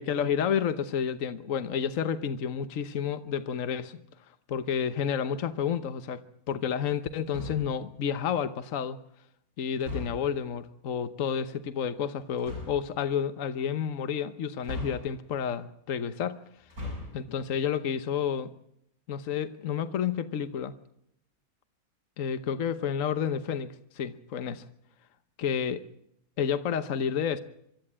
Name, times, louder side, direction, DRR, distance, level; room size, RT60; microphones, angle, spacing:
voice 1, 0.0-4.0 4.5-9.0 9.6-16.4 17.1-18.5 19.1-20.7 22.2-24.7 25.4-25.8 26.4-27.4, left 8 dB, 65° left, 11 dB, 1.3 m, -30 dB
sound 1, 7.3-7.8 9.8-10.4 12.4-12.9 14.6-15.4 16.6-17.3, left 2 dB, 75° right, 8.5 m, -39 dB
25.5 x 13.5 x 8.7 m, 0.73 s
omnidirectional pair, 1.5 m